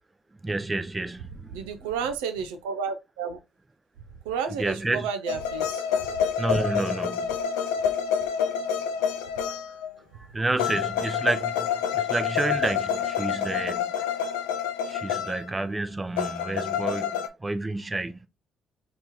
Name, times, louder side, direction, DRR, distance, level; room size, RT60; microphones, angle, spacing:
voice 1, 0.4-1.7 4.6-5.1 6.4-7.3 9.5-9.6 10.1-11.7 11.9-14.1 14.9-18.3, right 2 dB, 25° right, 0.6 m, -30 dB
voice 2, 1.5-3.4 4.2-5.8, right 6 dB, 85° right, 0.4 m, -31 dB
sound 1, 5.3-9.9 10.6-15.5 16.2-17.3, left 8 dB, 90° left, 0.4 m, -28 dB
3.0 x 2.9 x 3.5 m
hypercardioid pair, 50°, 0 cm